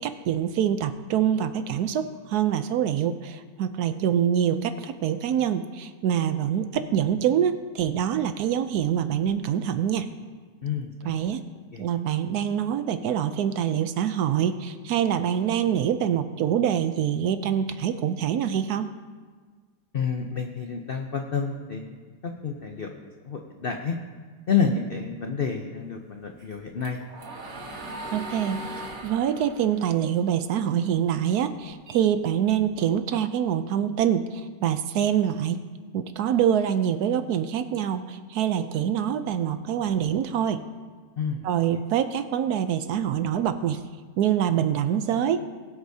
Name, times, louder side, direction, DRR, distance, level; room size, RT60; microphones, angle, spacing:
voice 1, 0.0-10.1 11.1-11.4 11.8-18.9 28.1-35.6 35.9-40.6 41.4-43.8 44.2-45.5, right 9 dB, 70° right, 10 dB, 1.0 m, -25 dB
voice 2, 10.6-11.1 11.7-11.8 19.9-22.0 22.2-22.9 23.2-23.9 24.5-27.0 41.2-41.4, left 6 dB, 75° left, 3 dB, 0.5 m, -29 dB
sound 1, 26.4-30.9 31.3-32.8, right 1 dB, 55° right, 1.7 m, -39 dB
20.5 x 8.1 x 2.7 m, 1.5 s
omnidirectional pair, 1.9 m